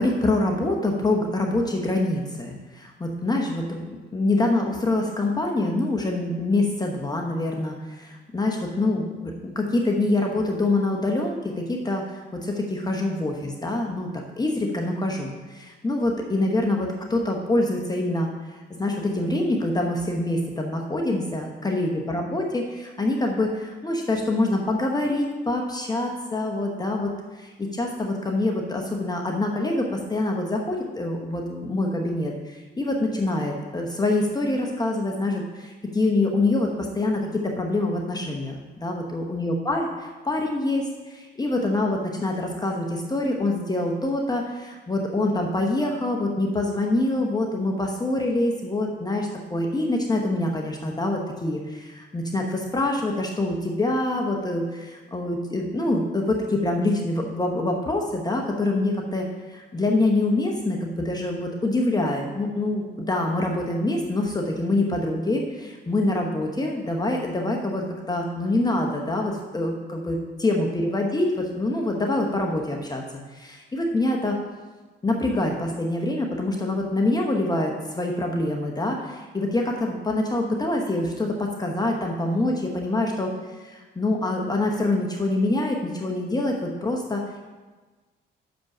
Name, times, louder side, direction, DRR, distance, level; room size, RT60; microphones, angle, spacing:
voice 1, 0.0-18.3 18.7-73.0 73.3-74.4 75.0-83.3 83.7-87.5, left 2 dB, 20° left, 1 dB, 0.9 m, -25 dB
6.2 x 5.1 x 6.0 m, 1.3 s
cardioid pair, 90°, 20 cm